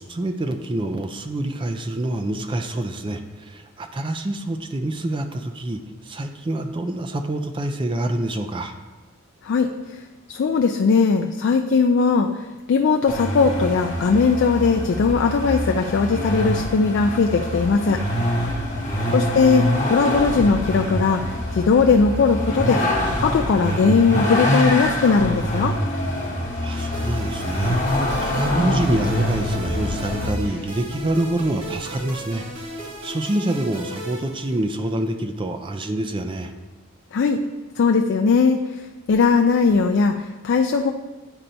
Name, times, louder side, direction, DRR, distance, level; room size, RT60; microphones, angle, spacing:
voice 1, 0.0-8.7 18.9-19.4 23.6-23.9 26.6-27.8 28.2-36.5, right 1 dB, 20° right, 7 dB, 0.3 m, -26 dB
voice 2, 9.4-10.0 10.3-12.4 12.7-18.0 19.1-22.8 23.2-25.8 37.1-37.4 37.8-38.6 39.1-40.9, left 5 dB, 55° left, 4 dB, 0.3 m, -19 dB
Vehicle, 13.1-30.3, left 1 dB, 35° left, 1.0 m, -25 dB
sound 1, 26.7-35.0, right 1 dB, 60° right, 2.0 m, -36 dB
sound 2, 27.6-33.2, left 2 dB, 85° left, 0.7 m, -37 dB
9.8 x 4.4 x 2.6 m, 1.2 s
head